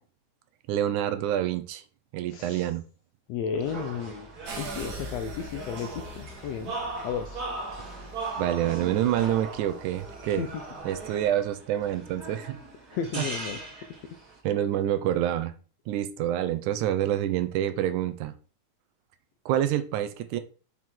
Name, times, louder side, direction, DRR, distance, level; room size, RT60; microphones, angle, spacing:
voice 1, 0.7-1.8 2.1-2.8 8.4-10.5 10.9-12.6 13.2-13.3 14.4-15.5 15.9-18.4 19.5-20.4, right 11 dB, 80° right, 11 dB, 2.1 m, -27 dB
voice 2, 2.3-2.7 3.3-4.3 4.6-6.7 7.0-7.4 10.3-10.5 12.9-13.6, left 7 dB, 80° left, 6 dB, 1.5 m, -33 dB
sound 1, 3.6-14.4, right 3 dB, 45° right, 1.3 m, -39 dB
sound 2, 4.4-11.3, right 3 dB, 60° right, 1.1 m, -46 dB
6.0 x 4.5 x 3.6 m, 0.37 s
omnidirectional pair, 3.5 m